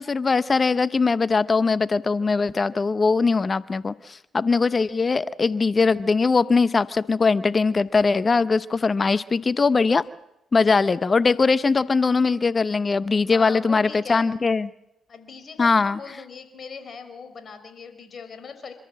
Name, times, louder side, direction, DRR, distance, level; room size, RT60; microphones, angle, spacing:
voice 1, 0.0-10.0 10.5-14.7 15.6-16.0, left 4 dB, 35° left, 16 dB, 0.7 m, -21 dB
voice 2, 13.2-14.3 15.1-18.7, left 5 dB, 50° left, 9 dB, 4.3 m, -39 dB
27.5 x 13.0 x 7.6 m, 0.90 s
supercardioid pair, 65°, 0 cm